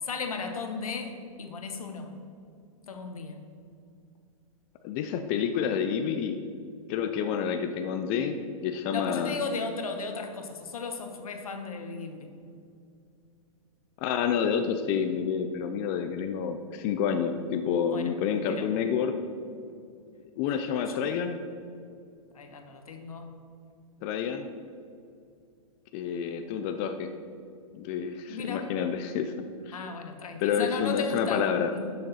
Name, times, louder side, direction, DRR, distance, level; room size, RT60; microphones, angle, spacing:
voice 1, 0.0-2.1 2.8-3.4 8.9-12.3 17.9-18.1 18.6-18.7 20.5-21.0 22.3-23.3 28.3-28.7 29.7-31.9, left 4 dB, 85° left, 5 dB, 1.3 m, -36 dB
voice 2, 4.8-6.4 6.9-9.4 14.0-19.2 20.4-21.4 24.0-24.5 25.9-27.1 27.7-29.3 29.7-29.8 30.4-31.7, left 7 dB, 40° left, 7 dB, 0.6 m, -29 dB
11.5 x 6.6 x 4.2 m, 2.4 s
hypercardioid pair, 125°, 18 cm